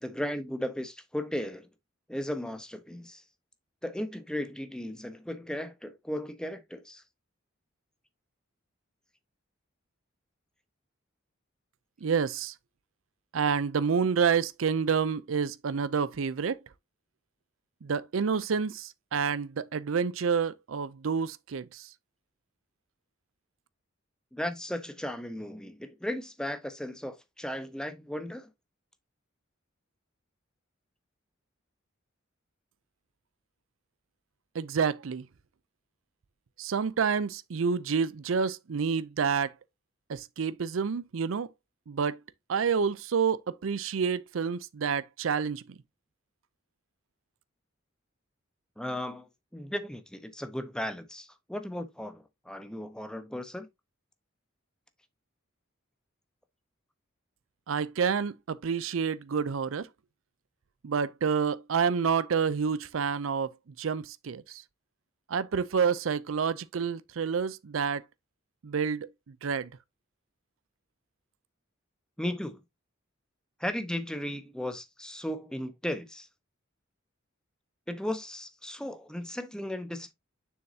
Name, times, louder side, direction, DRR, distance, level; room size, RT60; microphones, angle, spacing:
voice 1, 0.0-1.7 2.1-3.2 3.8-7.0 24.3-28.5 48.8-53.7 72.2-72.6 73.6-76.3 77.9-80.1, left 1 dB, 5° left, 0.9 m, -36 dB
voice 2, 12.0-12.5 13.3-16.6 17.8-21.9 34.5-35.3 36.6-39.5 40.1-41.5 41.9-42.2 42.5-45.8 57.7-59.9 60.8-63.5 63.8-64.6 65.3-68.0 68.6-69.7, right 6 dB, 80° right, 0.5 m, -28 dB
7.0 x 6.3 x 2.7 m
head